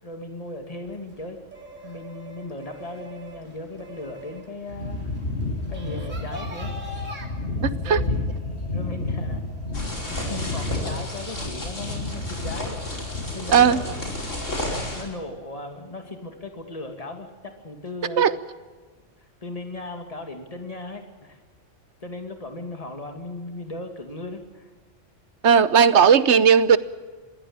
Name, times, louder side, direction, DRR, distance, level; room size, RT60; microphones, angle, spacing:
voice 1, 0.0-1.4 1.8-5.1 5.7-6.7 7.7-8.2 8.7-9.4 10.1-12.7 13.3-14.1 14.9-18.2 19.2-21.4 22.0-24.7, left 2 dB, 30° left, 2.5 m, -37 dB
sound 1, 0.8-7.3, equal, 85° right, 3.4 m, -42 dB
sound 2, 4.7-14.9, left 2 dB, 60° left, 8.4 m, -31 dB
voice 2, 7.6-8.0 13.5-13.8 18.2-18.3 25.4-26.8, right 7 dB, 70° right, 1.2 m, -16 dB
sound 3, 9.7-15.0, left 1 dB, 85° left, 5.4 m, -32 dB
22.5 x 16.5 x 8.8 m
omnidirectional pair, 1.3 m